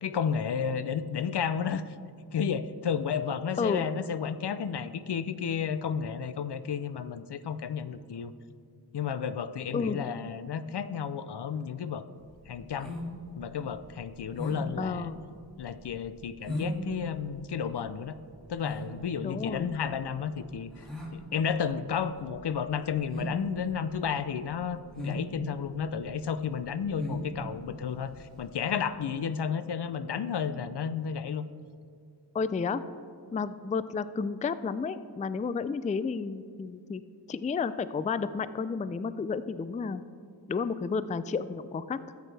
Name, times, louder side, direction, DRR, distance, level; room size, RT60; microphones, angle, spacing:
voice 1, 0.0-1.9 2.3-8.3 8.9-12.0 12.5-12.9 13.4-15.1 15.6-18.2 18.5-20.8 21.1-31.5, left 7 dB, 75° left, 13 dB, 0.5 m, -32 dB
voice 2, 9.7-10.1 14.8-15.2 19.2-19.7 32.3-32.8 33.3-37.0 37.3-40.0 40.5-42.1, left 5 dB, 20° left, 14 dB, 0.3 m, -31 dB
sound 1, 12.2-28.6, left 1 dB, ahead, 2.3 m, -39 dB
13.5 x 8.2 x 3.3 m, 2.3 s
wide cardioid pair, 55°, 41 cm